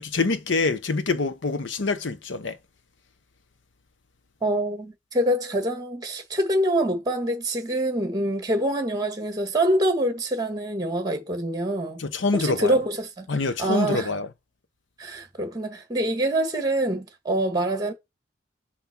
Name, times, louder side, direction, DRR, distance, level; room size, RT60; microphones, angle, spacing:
voice 1, 0.0-2.6 12.0-12.8 13.3-14.3, left 3 dB, 85° left, 0.8 m, -25 dB
voice 2, 4.4-12.0 12.3-13.3 13.6-14.1 15.0-17.9, right 1 dB, 20° right, 1.5 m, -25 dB
5.9 x 4.3 x 5.8 m
head